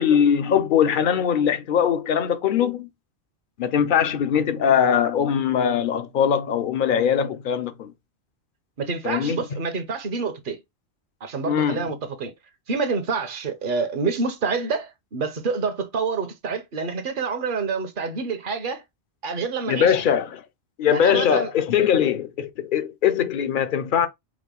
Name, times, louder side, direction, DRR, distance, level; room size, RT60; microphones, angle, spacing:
voice 1, 0.0-2.9 3.6-7.9 9.0-9.4 11.4-11.8 19.7-20.4 20.8-24.1, left 8 dB, 55° left, 0.7 m, -21 dB
voice 2, 8.8-10.6 11.2-12.3 12.7-18.8 19.2-20.0 20.9-21.5, right 4 dB, 50° right, 0.9 m, -27 dB
4.8 x 2.2 x 3.5 m
omnidirectional pair, 1.2 m